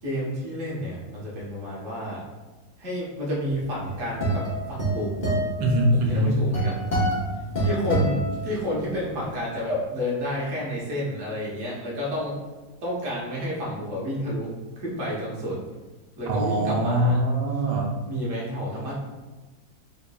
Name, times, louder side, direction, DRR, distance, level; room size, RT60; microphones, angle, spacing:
voice 1, 0.0-2.2 2.8-5.1 5.9-6.8 7.6-12.4 12.8-15.6 16.2-17.2 17.5-17.6 18.1-18.9, equal, 55° right, -5 dB, 1.2 m, -30 dB
sound 1, 3.6-9.0, right 1 dB, 40° left, 0.7 m, -27 dB
voice 2, 5.6-6.4 16.3-18.0, right 1 dB, 90° right, 1 dB, 1.2 m, -22 dB
3.7 x 3.4 x 2.2 m, 1.2 s
omnidirectional pair, 1.8 m